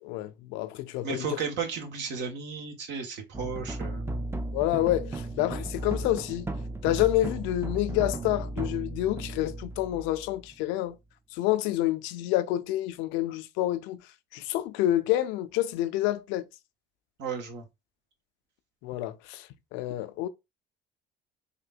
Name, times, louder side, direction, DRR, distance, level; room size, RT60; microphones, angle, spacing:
voice 1, 0.0-1.4 4.5-6.5 6.8-11.0 11.3-14.0 14.3-16.5 18.8-20.3, left 14 dB, 70° left, 0.5 m, -28 dB
voice 2, 1.0-4.0 17.2-17.6, right 5 dB, 60° right, 1.2 m, -34 dB
sound 1, 3.3-10.6, right 2 dB, 10° right, 0.5 m, -35 dB
3.5 x 2.6 x 2.4 m
hypercardioid pair, 65°, 21 cm